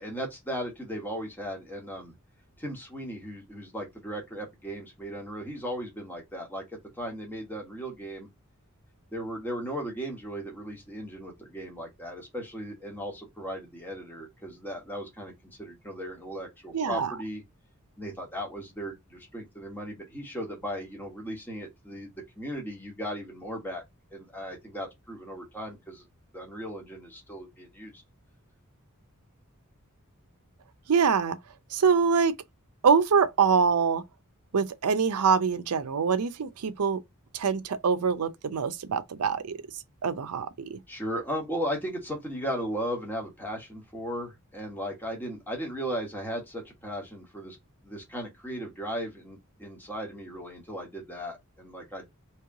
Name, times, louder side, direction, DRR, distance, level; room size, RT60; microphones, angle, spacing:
voice 1, 0.0-2.1 2.6-8.3 9.1-15.3 15.6-17.4 18.0-23.8 24.1-26.0 26.3-27.9 40.9-47.6 47.8-52.1, equal, 10° left, 1.3 m, -36 dB
voice 2, 16.7-17.1 30.9-31.4 31.7-32.3 32.8-34.0 34.5-37.0 37.3-39.6 40.0-40.8, right 6 dB, 80° right, 0.5 m, -24 dB
3.1 x 3.0 x 3.5 m
head